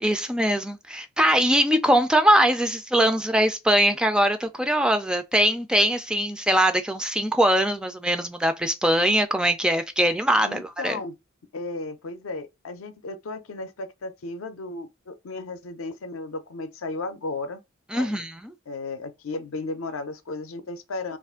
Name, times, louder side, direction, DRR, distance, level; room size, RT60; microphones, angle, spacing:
voice 1, 0.0-11.0 17.9-18.5, right 1 dB, 5° right, 0.3 m, -22 dB
voice 2, 10.4-11.1 11.5-17.6 17.9-18.2 18.7-21.2, left 3 dB, 75° left, 0.5 m, -34 dB
2.5 x 2.4 x 3.5 m
head